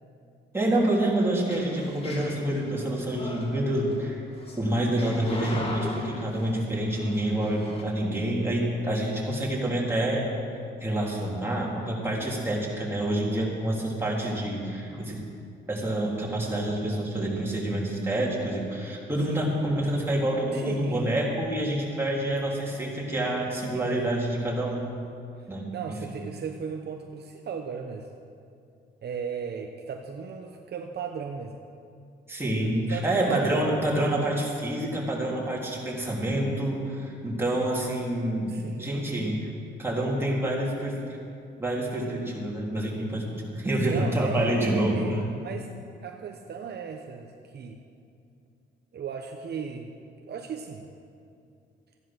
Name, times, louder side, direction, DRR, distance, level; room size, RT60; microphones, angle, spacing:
voice 1, 0.5-4.1 4.6-10.3 10.8-15.2 15.7-24.9 25.5-25.7 32.3-38.5 38.8-39.5 39.8-41.0 41.6-45.2, right 1 dB, 10° right, -4 dB, 3.7 m, -27 dB
sound 1, 1.4-7.8, left 1 dB, 30° left, 2.3 m, -39 dB
voice 2, 20.5-21.1 23.7-24.1 25.4-28.1 29.0-31.5 32.9-33.5 38.4-38.9 43.8-45.7 46.0-47.8 48.9-49.9 50.2-50.8, right 6 dB, 55° right, 4 dB, 1.0 m, -36 dB
14.5 x 10.5 x 6.2 m, 2.5 s
cardioid pair, 90°, 20 cm